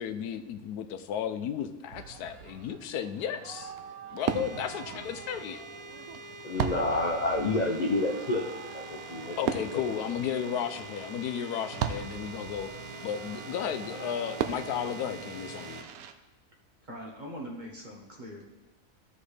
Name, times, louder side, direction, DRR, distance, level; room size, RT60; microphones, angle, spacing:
voice 1, 0.0-3.7 4.1-5.6 9.4-12.7 13.0-15.8, left 9 dB, 90° left, 9 dB, 1.2 m, -34 dB
Fireworks, 1.9-16.1, right 8 dB, 75° right, 1.0 m, -39 dB
sound 1, 4.2-15.8, right 2 dB, 55° right, 0.5 m, -44 dB
voice 2, 6.4-8.5 8.7-10.0, left 2 dB, 45° left, 1 dB, 0.5 m, -29 dB
voice 3, 16.8-18.5, equal, 35° right, -1 dB, 1.1 m, -42 dB
15.0 x 5.2 x 3.3 m, 1.1 s
omnidirectional pair, 1.6 m